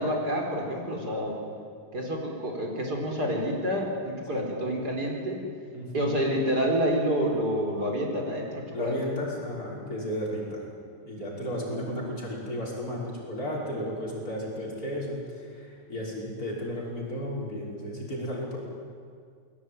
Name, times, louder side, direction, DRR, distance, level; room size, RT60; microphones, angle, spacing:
voice 1, 0.0-1.4 1.9-5.4 5.9-8.9 11.5-12.1, equal, 50° right, 0 dB, 4.8 m, -28 dB
voice 2, 5.7-6.2 8.7-10.6 11.0-18.6, equal, 45° left, -4 dB, 6.1 m, -34 dB
28.5 x 21.0 x 9.3 m, 2.2 s
omnidirectional pair, 2.2 m